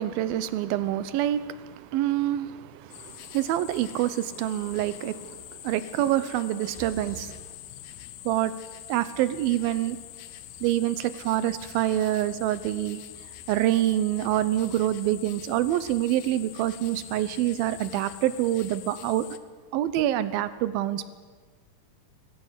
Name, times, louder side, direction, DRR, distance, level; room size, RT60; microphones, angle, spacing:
voice 1, 0.0-5.4 5.6-7.4 8.3-8.5 8.9-10.0 10.6-13.0 13.5-19.3 19.7-21.1, right 13 dB, 75° right, 14 dB, 2.4 m, -26 dB
sound 1, 2.9-19.4, left 13 dB, 75° left, 2.7 m, -44 dB
sound 2, 6.6-7.5, right 3 dB, 20° right, 2.9 m, -43 dB
20.5 x 15.5 x 8.2 m, 1.5 s
omnidirectional pair, 4.7 m